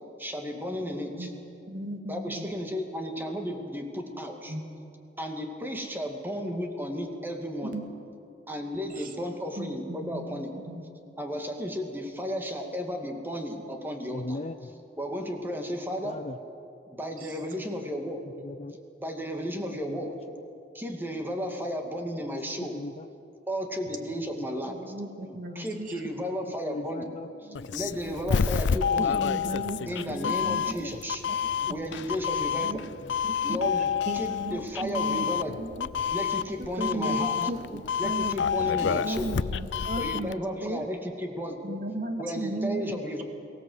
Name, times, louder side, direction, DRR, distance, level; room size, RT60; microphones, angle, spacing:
voice 1, 0.2-1.3 2.1-4.5 5.2-7.8 8.5-10.5 11.2-14.4 15.0-16.2 16.9-18.2 19.0-20.2 20.7-22.8 23.5-24.8 25.5-27.0 27.7-29.1 29.9-31.2 31.7-32.8 33.4-33.9 34.1-35.5 36.1-37.4 38.0-39.3 40.0-41.6 42.2-43.2, equal, 10° right, 3 dB, 2.1 m, -33 dB
voice 2, 1.7-2.5 4.5-4.6 7.6-7.8 9.0-9.1 9.6-10.3 10.7-10.8 17.2-17.3 24.7-26.1 27.5-27.6 28.0-28.2 29.0-30.8 31.6-32.0 32.6-32.8 33.2-33.6 34.1-35.3 35.6-35.9 36.8-40.8 41.6-43.0, right 1 dB, 50° right, 4 dB, 2.2 m, -36 dB
voice 3, 14.1-14.7 16.0-16.4 18.2-18.8 19.9-20.4 22.6-23.1 24.2-24.5 25.3-25.4 26.4-27.7 29.3-30.0 30.7-31.0 31.4-31.7 33.0-33.1 37.1-38.1 38.8-39.2 40.0-40.3 41.7-41.8 42.2-42.5, left 2 dB, 35° left, 7 dB, 0.6 m, -41 dB
Doorbell, 27.5-40.3, left 7 dB, 85° left, 0.5 m, -29 dB
23.0 x 17.5 x 7.9 m, 2.6 s
head